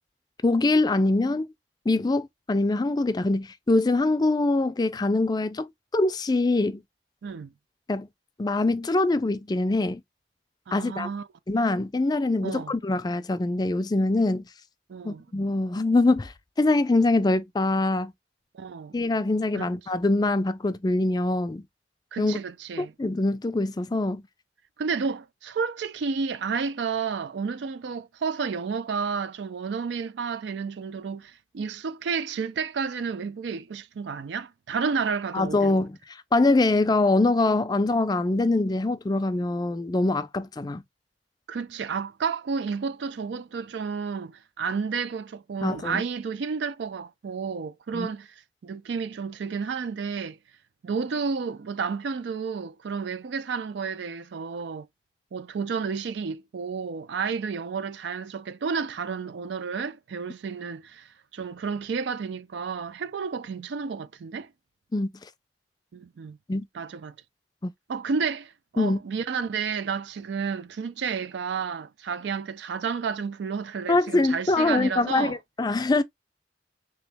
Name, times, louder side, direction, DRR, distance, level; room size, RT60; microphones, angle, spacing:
voice 1, 0.4-1.5 1.9-5.7 5.9-6.8 7.9-8.1 8.4-10.0 10.7-11.1 11.5-14.4 15.0-16.3 16.6-18.1 18.9-21.6 22.2-22.4 22.8-24.2 35.3-36.0 36.3-40.8 45.6-46.0 47.9-48.1 64.9-65.1 66.5-66.7 67.6-67.7 68.8-69.0 73.9-76.0, left 2 dB, 20° left, 0.4 m, -23 dB
voice 2, 7.2-7.5 10.7-11.3 12.4-12.7 14.9-15.3 18.5-19.0 19.5-19.7 22.1-22.9 24.8-35.7 41.5-48.3 48.6-50.4 50.8-54.9 55.3-64.5 65.9-66.4 66.7-67.1 67.9-75.4, right 5 dB, 70° right, 0.4 m, -31 dB
3.5 x 3.0 x 3.3 m
head